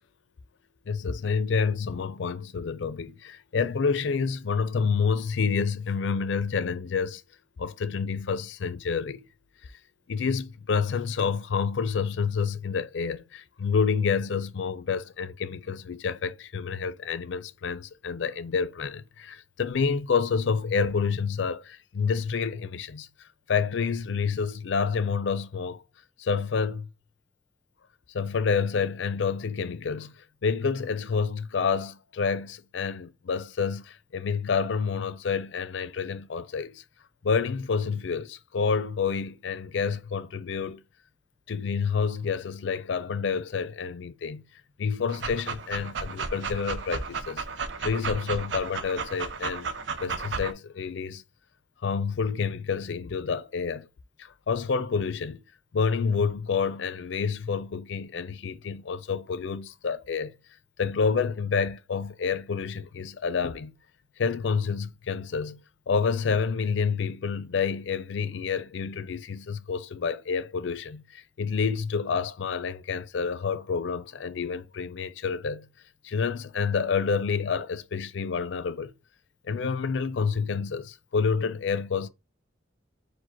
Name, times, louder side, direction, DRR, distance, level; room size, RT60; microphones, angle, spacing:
voice 1, 0.9-7.2 7.6-9.2 9.6-9.7 10.1-23.1 23.5-25.8 26.2-26.9 28.1-30.1 30.4-36.8 37.2-40.8 41.5-44.4 44.8-47.4 47.8-49.7 50.0-51.2 51.8-53.9 54.2-55.4 55.7-60.3 60.8-63.7 64.2-75.7 76.0-78.9 79.4-82.1, left 5 dB, 70° left, 0.4 m, -28 dB
Dog, 45.1-50.5, right 5 dB, 65° right, 0.5 m, -34 dB
4.8 x 2.1 x 4.4 m
head